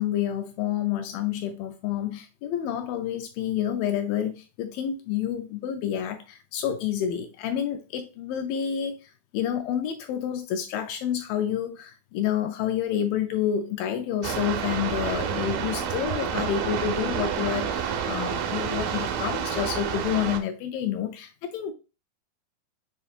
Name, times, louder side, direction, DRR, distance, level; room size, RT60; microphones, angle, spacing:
voice 1, 0.0-21.7, left 9 dB, 80° left, 2.1 m, -29 dB
sound 1, 14.2-20.4, right 7 dB, 80° right, 2.3 m, -29 dB
7.6 x 2.7 x 2.4 m
omnidirectional pair, 4.4 m